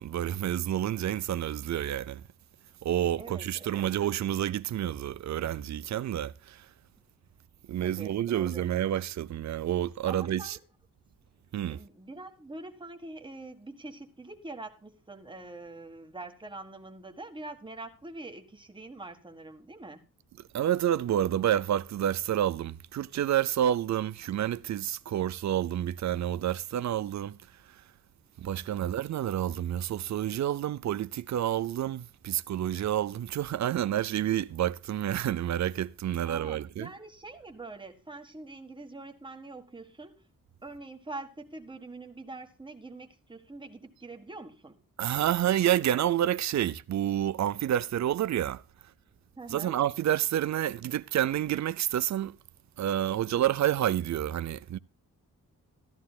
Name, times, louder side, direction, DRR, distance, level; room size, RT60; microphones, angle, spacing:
voice 1, 0.0-2.2 2.8-6.7 7.7-10.6 11.5-11.8 20.5-27.4 27.7-27.8 28.4-36.9 45.0-48.6 49.5-52.4 52.8-54.8, right 11 dB, 60° right, 0.5 m, -29 dB
voice 2, 3.2-3.9 7.8-8.6 10.0-10.6 11.7-20.0 28.5-28.9 36.1-40.1 40.6-44.8 49.4-49.8, right 2 dB, 15° right, 1.7 m, -44 dB
14.0 x 14.0 x 2.3 m
wide cardioid pair, 140°, 33 cm